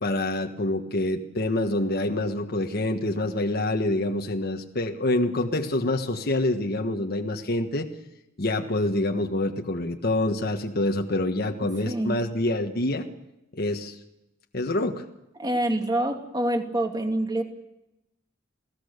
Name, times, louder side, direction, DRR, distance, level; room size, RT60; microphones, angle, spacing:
voice 1, 0.0-7.9 8.4-13.1 13.5-14.0 14.5-15.0, left 1 dB, 50° left, 3 dB, 1.5 m, -26 dB
voice 2, 11.8-12.2 15.4-17.4, right 1 dB, 20° right, 4 dB, 2.7 m, -26 dB
28.5 x 18.0 x 6.7 m, 0.91 s
head